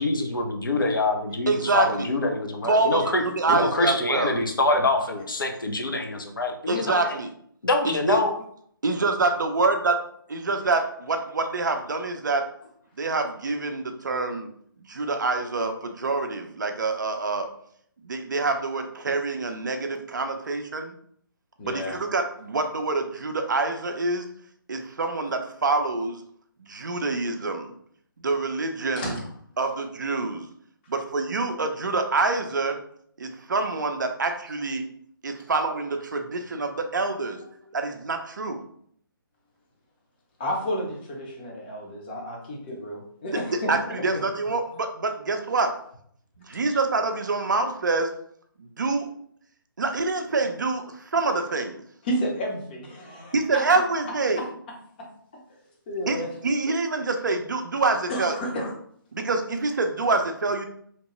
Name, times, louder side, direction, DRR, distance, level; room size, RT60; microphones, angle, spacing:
voice 1, 0.0-3.2 3.5-6.9 7.6-8.4, left 2 dB, 65° left, 4 dB, 0.6 m, -25 dB
voice 2, 1.5-2.1 2.6-4.3 6.7-7.3 7.8-8.2 8.8-10.0 10.3-12.5 13.0-14.5 14.9-17.5 18.0-20.9 21.6-24.3 24.7-26.2 26.6-27.7 28.2-29.2 29.6-30.5 30.9-32.8 33.2-34.9 35.2-37.4 37.7-38.6 43.2-43.4 43.7-45.8 46.4-48.1 48.6-49.1 49.8-51.8 53.3-54.5 56.1-58.3 59.1-60.7, right 3 dB, 55° right, 6 dB, 0.4 m, -26 dB
voice 3, 21.6-22.0 29.0-29.3 40.4-44.0 46.7-46.8 52.0-53.6 55.9-56.3 58.1-58.7, equal, 25° left, 0 dB, 0.6 m, -31 dB
2.8 x 2.1 x 3.0 m, 0.64 s
figure-of-eight pair, 145°, 12 cm